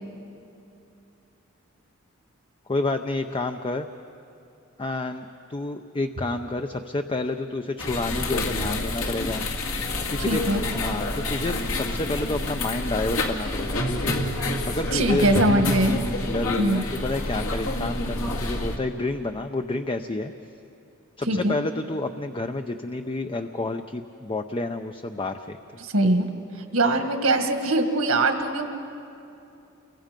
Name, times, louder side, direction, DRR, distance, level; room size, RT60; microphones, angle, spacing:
voice 1, 2.7-3.9 4.8-9.6 10.1-10.4 10.7-14.2 14.6-20.3 21.2-25.6, left 2 dB, 25° left, 6 dB, 0.6 m, -29 dB
sound 1, 7.8-18.8, left 2 dB, 70° left, 2.1 m, -28 dB
voice 2, 10.3-10.6 14.9-16.0 16.6-16.8 21.3-21.6 25.8-26.3 26.7-28.6, right 2 dB, 80° right, 5 dB, 1.9 m, -22 dB
29.5 x 23.5 x 5.2 m, 2.7 s
head